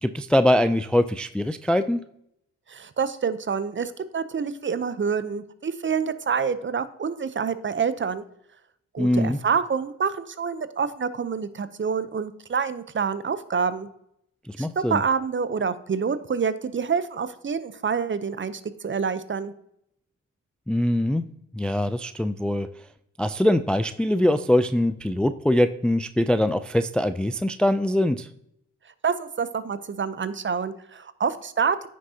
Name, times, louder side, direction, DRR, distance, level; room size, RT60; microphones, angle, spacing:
voice 1, 0.0-2.0 9.0-9.4 14.5-15.0 20.7-21.3 21.5-22.7 23.2-28.3, left 1 dB, 5° left, 12 dB, 0.3 m, -22 dB
voice 2, 2.7-8.2 8.9-13.9 14.6-19.5 29.0-31.8, right 6 dB, 35° right, 14 dB, 0.7 m, -27 dB
9.3 x 6.3 x 2.8 m, 0.75 s
supercardioid pair, 55°, 34 cm